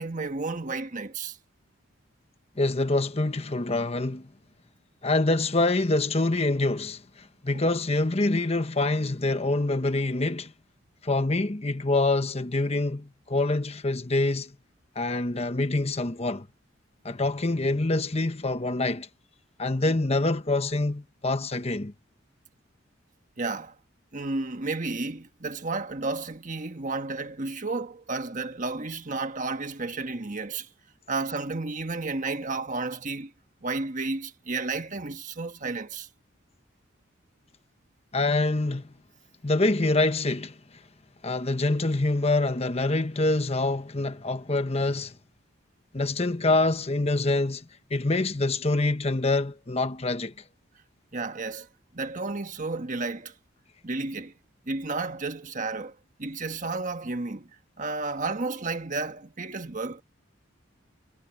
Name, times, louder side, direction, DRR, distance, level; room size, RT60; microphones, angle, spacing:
voice 1, 0.0-1.4 7.5-7.6 23.4-23.7 24.1-30.7 31.1-33.3 33.6-36.1 51.1-51.7 51.9-53.3 53.8-54.3 54.6-57.5 57.8-60.0, right 3 dB, 40° right, 1.5 m, -32 dB
voice 2, 2.6-4.3 5.0-10.5 11.0-14.5 14.9-16.5 17.0-19.1 19.6-21.9 38.1-38.8 39.4-40.6 41.2-45.1 45.9-47.6 47.9-50.3, left 2 dB, 30° left, 1.1 m, -25 dB
head